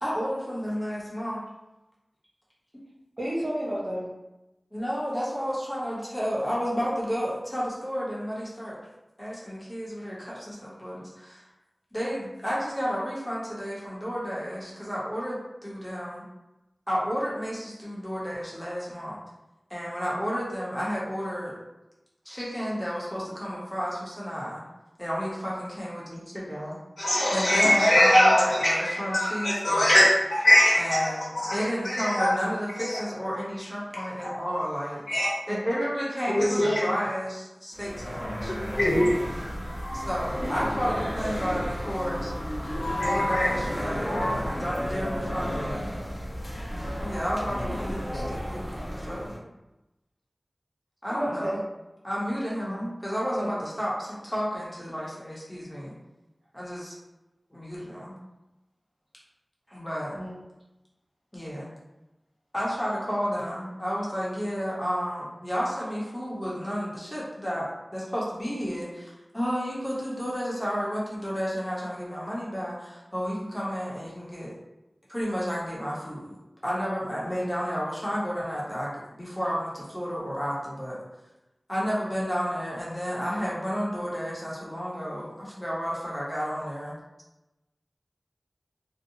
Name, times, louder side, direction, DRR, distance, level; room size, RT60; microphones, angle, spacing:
voice 1, 0.0-1.4 4.7-8.8 9.2-11.5 11.9-16.2 16.9-19.2 19.7-21.6 22.2-24.6 25.0-26.8 27.3-30.0 30.8-35.1 35.5-38.5 39.9-42.3 42.9-45.9 47.0-48.7 48.9-49.3 51.0-51.6 52.0-55.9 56.5-57.0 57.5-58.1 59.7-60.2 61.3-61.7 62.5-74.5 75.1-76.4 76.6-81.0 81.7-87.0, equal, 15° left, -7 dB, 0.9 m, -31 dB
voice 2, 3.2-4.1 51.1-51.6 53.4-53.6 60.1-60.4, equal, 35° right, -7 dB, 0.6 m, -31 dB
voice 3, 27.0-31.0 31.4-31.5 31.8-32.3 32.8-33.0 35.1-35.3 36.3-36.8 38.5-39.1 42.8-43.5 44.1-44.3, left 1 dB, 80° left, -8 dB, 0.7 m, -22 dB
sound 1, 37.7-49.4, equal, 45° left, 0.7 m, -32 dB
2.6 x 2.1 x 2.7 m, 0.97 s
wide cardioid pair, 60°, 0 cm